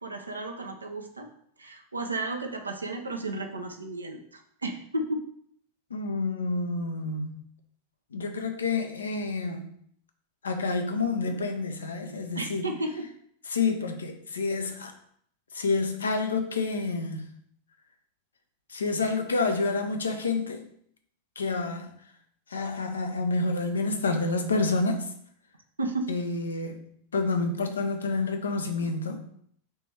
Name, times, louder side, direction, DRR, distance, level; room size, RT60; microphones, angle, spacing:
voice 1, 0.0-1.3 1.6-5.3 12.4-13.1 25.8-26.1, right 2 dB, 80° right, 4 dB, 0.4 m, -33 dB
voice 2, 5.9-7.5 8.1-9.7 10.4-12.7 13.5-14.9 15.5-17.3 18.7-20.6 21.4-21.9 22.5-25.1 26.1-29.2, left 3 dB, 70° left, 5 dB, 0.5 m, -28 dB
3.4 x 3.0 x 4.3 m, 0.66 s
figure-of-eight pair, 90°, 0 cm